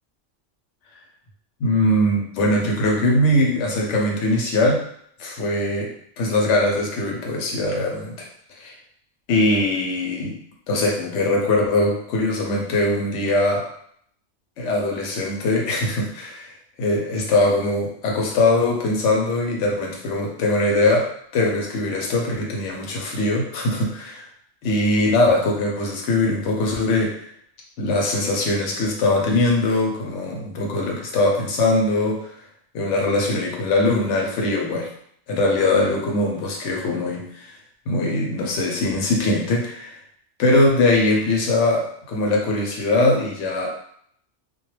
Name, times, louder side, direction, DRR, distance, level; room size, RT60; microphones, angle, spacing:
voice 1, 1.6-4.8 5.2-8.3 8.6-8.7 9.3-10.4 10.7-13.7 14.6-16.3 16.8-24.3 24.6-27.2 27.8-32.3 32.7-34.9 35.3-37.5 37.9-40.0 40.4-43.7, left 2 dB, 80° left, 0 dB, 0.9 m, -21 dB
2.2 x 2.2 x 3.0 m, 0.66 s
omnidirectional pair, 1.2 m